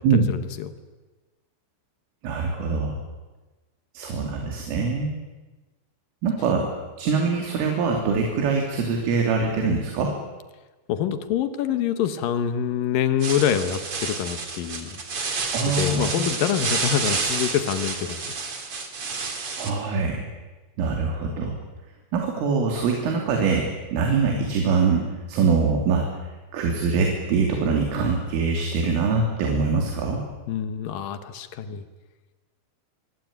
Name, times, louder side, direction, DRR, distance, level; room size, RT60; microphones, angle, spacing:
voice 1, 0.1-0.7 10.9-15.0 15.7-18.2 30.5-31.8, left 9 dB, 75° left, 10 dB, 2.1 m, -26 dB
voice 2, 2.2-3.0 4.0-5.2 6.2-6.7 7.0-10.2 15.5-16.2 19.6-20.3 20.8-21.6 22.1-26.1 26.5-30.2, right 4 dB, 75° right, 2 dB, 5.4 m, -23 dB
sound 1, 13.2-19.7, right 4 dB, 35° right, 2.9 m, -29 dB
24.5 x 24.5 x 8.8 m, 1.2 s
omnidirectional pair, 5.9 m